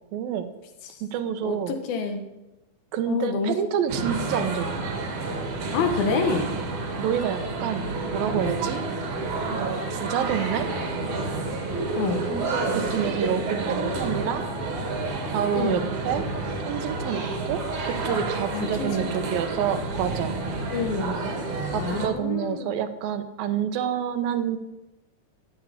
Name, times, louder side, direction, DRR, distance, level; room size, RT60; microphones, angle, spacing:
voice 1, 0.1-0.5 1.0-1.8 2.9-4.8 7.0-8.8 9.6-10.7 12.7-14.5 15.3-16.3 16.7-20.4 21.7-24.6, right 9 dB, 80° right, 9 dB, 2.9 m, -28 dB
voice 2, 1.4-2.2 3.1-3.6 5.7-6.6 12.0-12.3 15.6-15.9 18.5-18.9 19.2-19.4 20.7-21.2 21.7-22.8, left 5 dB, 90° left, 4 dB, 3.5 m, -27 dB
sound 1, 3.9-22.1, right 3 dB, 60° right, 3.4 m, -29 dB
15.0 x 8.8 x 8.5 m, 0.99 s
omnidirectional pair, 4.1 m